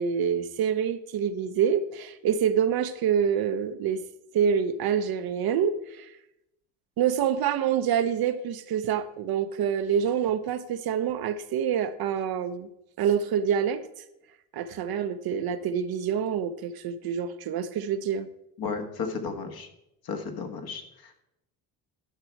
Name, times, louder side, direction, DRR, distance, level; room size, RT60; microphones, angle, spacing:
voice 1, 0.0-4.0 4.3-6.1 7.0-12.7 13.0-13.8 14.5-18.3, right 8 dB, 55° right, 10 dB, 0.8 m, -26 dB
voice 2, 18.6-19.7 20.0-21.2, left 5 dB, 55° left, 4 dB, 1.6 m, -34 dB
11.0 x 6.0 x 4.6 m, 0.84 s
supercardioid pair, 75°, 44 cm